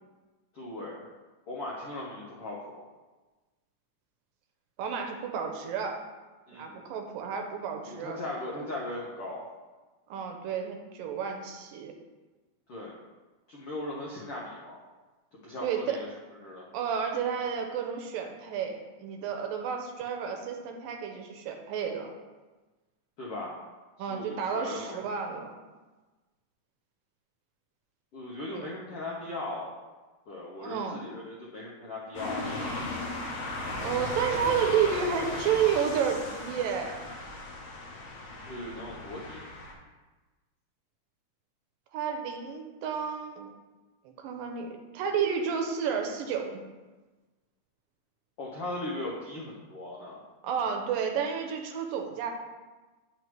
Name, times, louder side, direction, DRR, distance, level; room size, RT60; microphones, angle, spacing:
voice 1, 0.5-1.0 1.5-2.8 6.5-6.7 7.8-9.4 12.7-12.9 13.5-14.8 15.4-16.1 16.4-16.6 23.2-23.5 24.0-25.0 28.1-29.7 30.3-32.6 38.5-39.4 48.4-50.2, left 2 dB, 90° left, -5 dB, 1.2 m, -38 dB
voice 2, 4.8-6.0 6.5-8.2 10.1-11.9 15.6-16.0 16.7-22.1 24.0-25.5 28.5-28.7 30.6-31.0 33.8-37.1 41.9-43.5 44.1-46.6 50.4-52.3, right 7 dB, 80° right, 3 dB, 2.2 m, -31 dB
sound 1, 32.1-39.7, left 2 dB, 65° left, 1.8 m, -36 dB
9.3 x 5.6 x 3.1 m, 1.2 s
omnidirectional pair, 4.2 m